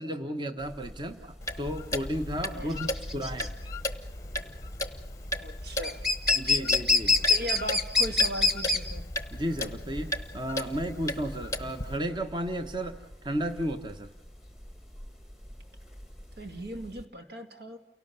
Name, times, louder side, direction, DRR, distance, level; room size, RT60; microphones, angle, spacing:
voice 1, 0.0-3.5 6.4-7.2 9.3-14.1, equal, 25° right, 7 dB, 1.1 m, -33 dB
sound 1, 0.7-17.0, left 3 dB, 5° right, 1.7 m, -28 dB
Clock, 1.4-12.0, left 1 dB, 15° left, 1.0 m, -36 dB
voice 2, 5.4-6.0 6.5-6.7 7.3-9.1 16.4-17.8, equal, 70° right, 6 dB, 2.3 m, -38 dB
29.0 x 18.0 x 6.8 m, 0.68 s
head